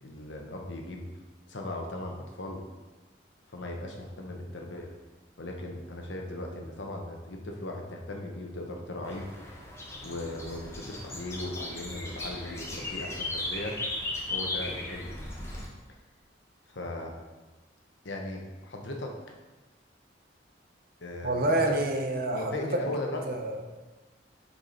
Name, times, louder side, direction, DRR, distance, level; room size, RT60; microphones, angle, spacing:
voice 1, 0.0-1.1 1.5-2.6 3.5-4.9 5.4-9.3 10.0-13.8 14.3-15.1 16.7-17.1 18.0-19.2 21.0-21.8 22.3-23.3, left 1 dB, 80° left, 1 dB, 1.0 m, -37 dB
sound 1, 9.0-15.7, left 2 dB, 15° left, 0.9 m, -37 dB
voice 2, 21.2-23.6, right 1 dB, 50° right, 3 dB, 0.8 m, -28 dB
6.4 x 4.8 x 4.3 m, 1.2 s
head